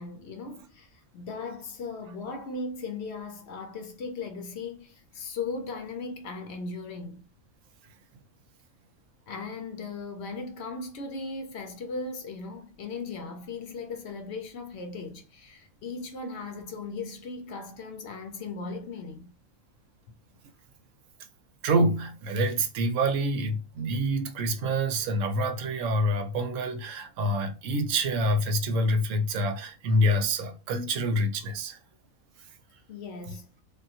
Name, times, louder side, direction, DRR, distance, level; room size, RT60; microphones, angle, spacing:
voice 1, 0.0-7.2 9.3-19.3 32.9-33.5, left 4 dB, 65° left, 0.8 m, -37 dB
voice 2, 21.6-31.8 32.4-32.5, right 1 dB, 80° right, 1.0 m, -27 dB
3.6 x 2.2 x 2.7 m
omnidirectional pair, 1.4 m